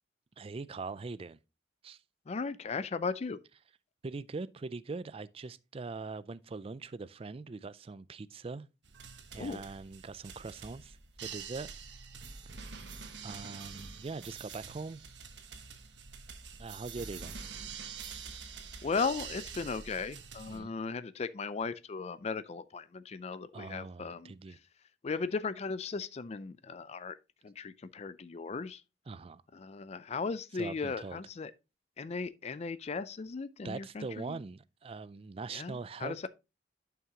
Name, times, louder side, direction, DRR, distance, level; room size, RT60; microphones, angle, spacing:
voice 1, 0.4-1.4 1.8-2.0 4.0-8.7 9.3-11.7 13.2-15.0 16.6-17.4 20.5-20.8 23.5-24.6 29.1-29.4 30.6-31.2 33.6-36.3, right 4 dB, 30° right, 0.4 m, -42 dB
voice 2, 2.3-3.4 9.4-9.6 18.8-24.6 25.0-27.2 27.4-28.8 29.5-31.5 32.0-34.4 35.5-36.3, left 4 dB, 35° left, 0.4 m, -37 dB
sound 1, 8.8-20.6, right 6 dB, 75° right, 1.2 m, -46 dB
11.0 x 5.8 x 2.9 m
head